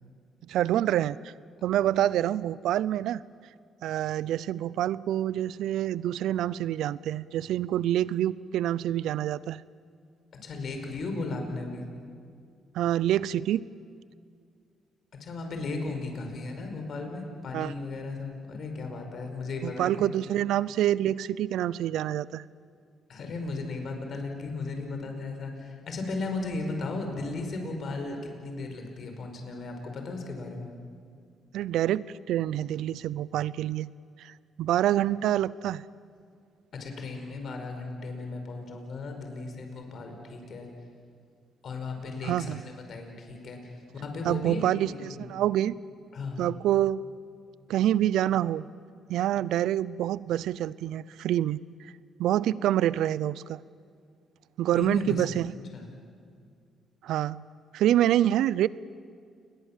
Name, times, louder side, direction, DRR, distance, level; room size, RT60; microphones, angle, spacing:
voice 1, 0.5-1.3 1.6-3.2 3.8-9.6 12.7-13.6 17.5-17.7 19.6-22.4 31.5-33.9 34.2-35.8 42.2-42.6 44.2-45.8 46.4-47.0 47.7-48.7 49.1-51.9 52.2-53.6 54.6-55.5 57.0-57.4 57.7-58.7, right 12 dB, 85° right, 19 dB, 0.6 m, -27 dB
voice 2, 10.4-11.8 15.2-20.1 23.1-30.7 36.7-40.7 41.6-45.3 46.1-46.4 54.7-55.4 55.7-55.9, left 3 dB, 55° left, 4 dB, 5.2 m, -36 dB
29.5 x 21.5 x 7.4 m, 2.2 s
cardioid pair, 90°, 0 cm